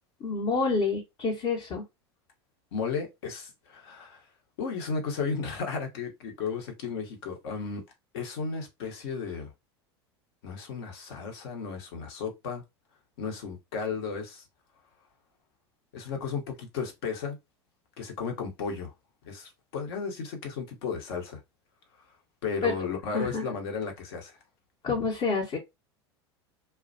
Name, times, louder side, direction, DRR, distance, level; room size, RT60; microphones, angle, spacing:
voice 1, 0.2-1.8 22.6-22.7 23.1-23.5 24.8-25.6, left 4 dB, 40° left, 0.9 m, -28 dB
voice 2, 2.7-4.2 4.6-7.8 8.1-9.5 10.4-12.6 13.2-14.4 15.9-17.4 18.0-18.9 19.2-21.4 22.4-24.4, left 5 dB, 65° left, 1.0 m, -34 dB
2.4 x 2.1 x 2.5 m
hypercardioid pair, 90°, 14 cm